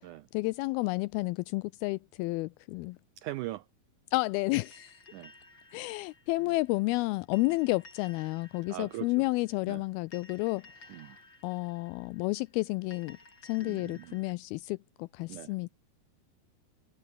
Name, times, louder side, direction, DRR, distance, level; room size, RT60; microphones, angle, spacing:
voice 1, 0.3-3.0 4.1-5.0 5.7-10.7 11.4-13.2 13.4-15.7, left 22 dB, 85° left, 2.4 m, -31 dB
voice 2, 3.2-3.6 5.1-5.3 8.7-9.2 9.7-9.8 10.9-11.2 13.6-14.2 15.3-15.5, right 16 dB, 90° right, 1.7 m, -40 dB
sound 1, 4.5-14.3, left 2 dB, 30° left, 8.2 m, -56 dB
omnidirectional pair, 4.5 m